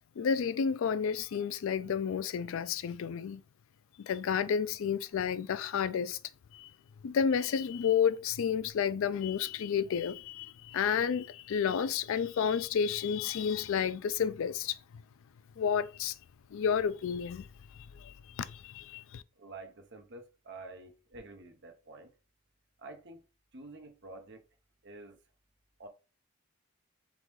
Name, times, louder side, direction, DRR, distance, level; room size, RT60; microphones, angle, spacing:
voice 1, 0.2-3.4 4.0-6.2 6.5-6.7 7.0-14.8 15.6-16.2 16.5-17.5 17.7-19.2, left 7 dB, 65° left, 0.3 m, -31 dB
voice 2, 19.4-22.1 22.8-23.2 23.5-24.4 24.8-25.2 25.8-25.9, right 2 dB, 50° right, 0.8 m, -48 dB
4.0 x 3.7 x 3.1 m
head